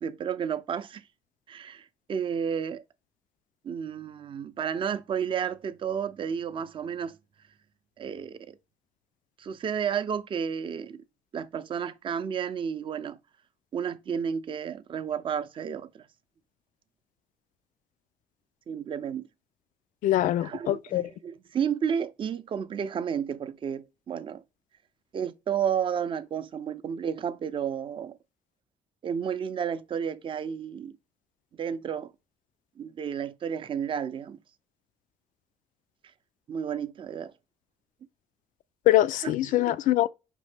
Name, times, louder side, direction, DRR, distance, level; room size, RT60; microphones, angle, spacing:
voice 1, 0.0-1.0 1.5-2.8 3.6-7.2 8.0-8.6 9.4-11.0 11.3-13.2 13.7-16.1 18.7-19.3 20.4-24.4 25.1-28.2 29.0-31.0 31.6-32.1 32.8-34.4 36.5-37.3 39.2-39.7, right 7 dB, 40° right, 0.5 m, -32 dB
voice 2, 20.0-21.1 38.9-40.1, left 14 dB, 70° left, 0.4 m, -23 dB
5.3 x 2.7 x 3.3 m
cardioid pair, 115°, 14 cm